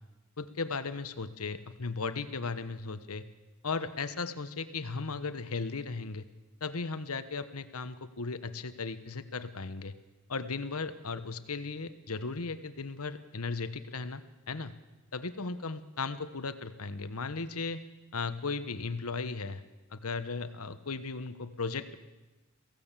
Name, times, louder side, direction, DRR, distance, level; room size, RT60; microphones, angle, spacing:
voice 1, 0.4-3.2 3.6-6.3 6.6-9.9 10.3-14.7 15.1-17.8 18.1-19.6 19.9-22.0, left 4 dB, 80° left, 11 dB, 1.2 m, -36 dB
23.0 x 16.5 x 7.5 m, 1.1 s
head